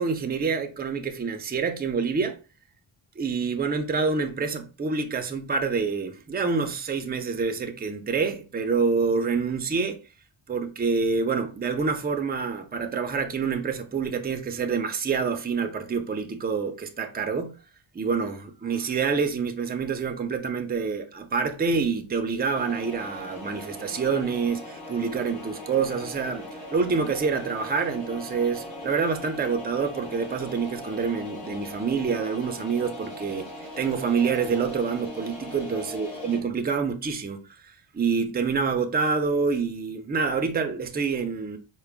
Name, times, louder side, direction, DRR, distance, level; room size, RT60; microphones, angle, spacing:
voice 1, 0.0-2.3 3.2-10.0 10.5-17.5 17.9-26.5 26.7-37.4 37.9-41.6, right 5 dB, 20° right, 0.4 m, -27 dB
sound 1, 22.5-36.4, left 1 dB, 55° left, 2.2 m, -40 dB
4.6 x 2.1 x 3.4 m
wide cardioid pair, 110°, 49 cm